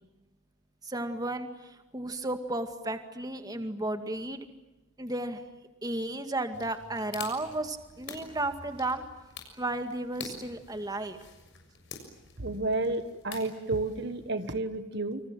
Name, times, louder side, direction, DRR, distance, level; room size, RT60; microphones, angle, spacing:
voice 1, 0.8-4.5 5.0-5.4 5.8-9.1 9.5-11.2, right 2 dB, 20° right, 7 dB, 2.2 m, -33 dB
sound 1, 6.5-14.3, left 5 dB, 60° left, 6.7 m, -47 dB
voice 2, 12.4-15.2, right 2 dB, 55° right, 9 dB, 1.5 m, -31 dB
29.0 x 27.0 x 7.6 m, 1.0 s
head